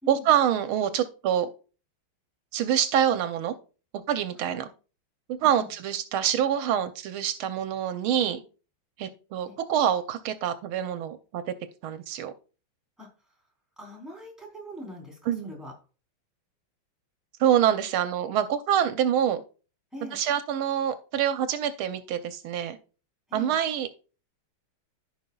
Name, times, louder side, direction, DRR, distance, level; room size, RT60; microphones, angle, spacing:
voice 1, 0.1-1.5 2.5-3.5 3.9-4.7 5.3-8.4 9.0-11.5 11.8-12.3 15.3-15.5 17.4-19.4 20.1-22.8 23.3-23.9, right 10 dB, 80° right, 1.5 m, -26 dB
voice 2, 13.8-15.7 19.9-20.2 23.3-23.6, equal, ahead, 3.5 m, -42 dB
14.5 x 5.4 x 2.3 m
omnidirectional pair, 2.3 m